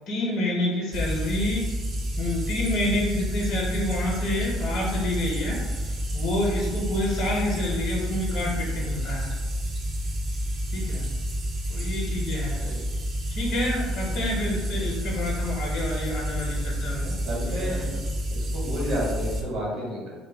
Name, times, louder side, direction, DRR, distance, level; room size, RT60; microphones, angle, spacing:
voice 1, 0.1-1.7 2.2-9.3 10.7-11.1 11.7-12.6 13.3-18.0, left 1 dB, 45° left, -3 dB, 0.6 m, -28 dB
sound 1, 0.9-19.4, equal, 35° right, 0.4 m, -29 dB
voice 2, 17.2-18.0 18.3-20.1, equal, 65° right, -4 dB, 1.0 m, -31 dB
2.1 x 2.1 x 3.3 m, 1.3 s
cardioid pair, 130°, 0 cm